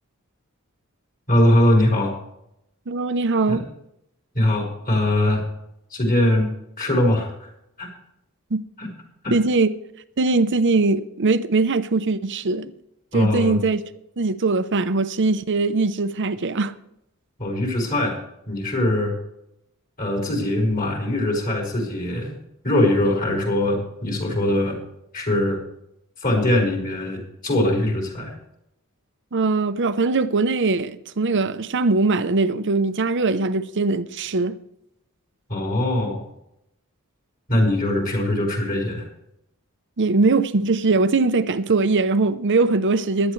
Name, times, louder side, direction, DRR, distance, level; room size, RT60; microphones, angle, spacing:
voice 1, 1.3-2.1 3.5-3.6 4.3-5.4 5.9-6.5 6.8-7.5 7.8-7.9 8.8-8.9 9.2-9.3 13.1-13.6 17.4-18.2 18.5-19.1 20.0-22.3 22.6-24.8 25.1-25.6 26.2-28.3 35.5-36.2 37.5-39.0, left 1 dB, 40° left, 4.7 m, -21 dB
voice 2, 2.9-3.6 8.5-8.6 9.3-9.7 10.2-12.7 13.1-13.8 14.2-16.7 29.3-34.6 40.0-43.3, right 3 dB, 55° right, 0.7 m, -21 dB
17.0 x 12.0 x 3.2 m
head